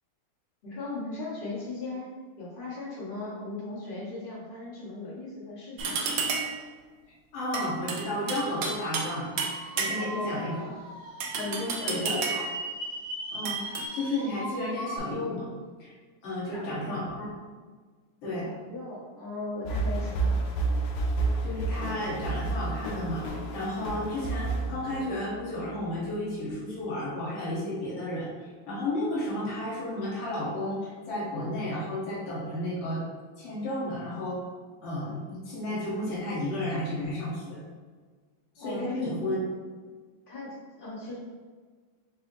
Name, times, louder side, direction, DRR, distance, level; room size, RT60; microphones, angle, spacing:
voice 1, 0.6-2.1 2.4-6.1 9.8-10.8 11.3-12.1 16.5-17.0 18.4-20.5 38.6-39.1 40.3-41.2, left 2 dB, 40° left, -7 dB, 0.8 m, -38 dB
sound 1, 5.8-6.6 7.5-9.1 9.4-10.2 11.2-12.5 13.4-13.8, right 5 dB, 75° right, 1.0 m, -31 dB
voice 2, 7.3-10.6 11.8-12.4 13.3-15.5 15.8-15.9 16.2-17.3 18.2-18.5 21.4-33.0 33.4-34.4 34.8-37.6 38.6-39.4, left 1 dB, 65° left, -7 dB, 2.0 m, -33 dB
Slide-whistle, 9.4-15.0, right 1 dB, 40° right, 0.8 m, -38 dB
sound 2, 19.6-25.6, right 3 dB, 90° left, 1.6 m, -30 dB
6.1 x 2.0 x 3.1 m, 1.5 s
omnidirectional pair, 2.4 m